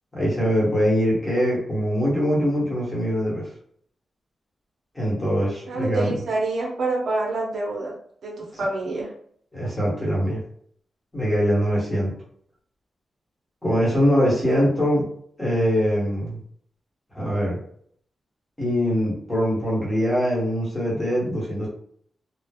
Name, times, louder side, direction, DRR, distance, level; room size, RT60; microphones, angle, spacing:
voice 1, 0.1-3.5 4.9-6.1 9.5-10.4 11.1-12.1 13.6-15.0 15.4-16.4 17.1-17.6 18.6-21.7, equal, 10° left, -6 dB, 1.0 m, -22 dB
voice 2, 5.7-7.9 8.2-9.1 14.2-14.7, right 2 dB, 60° right, -2 dB, 0.6 m, -27 dB
3.1 x 2.0 x 2.2 m, 0.62 s
wide cardioid pair, 170°, 0 cm